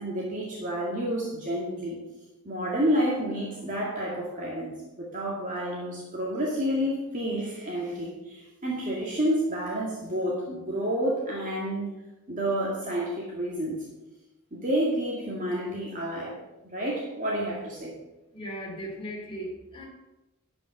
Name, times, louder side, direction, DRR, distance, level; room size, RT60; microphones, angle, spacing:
voice 1, 0.0-2.0 2.4-11.9 12.3-13.9 14.5-16.3 16.6-17.9, equal, 35° right, -4 dB, 2.0 m, -29 dB
voice 2, 18.3-19.9, equal, 25° left, -1 dB, 2.7 m, -37 dB
11.5 x 5.3 x 7.0 m, 1.0 s
head